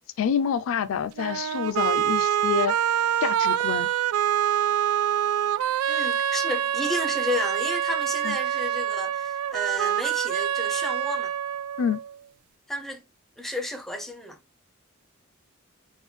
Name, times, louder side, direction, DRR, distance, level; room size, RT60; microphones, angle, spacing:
voice 1, 0.2-2.7 3.2-3.9 8.2-8.4 11.8-12.0, left 7 dB, 70° left, 0.3 m, -27 dB
sound 1, 1.2-12.1, right 10 dB, 85° right, 0.3 m, -26 dB
voice 2, 5.9-11.3 12.7-13.0 13.4-14.4, left 1 dB, ahead, 0.4 m, -32 dB
3.6 x 2.2 x 3.2 m
head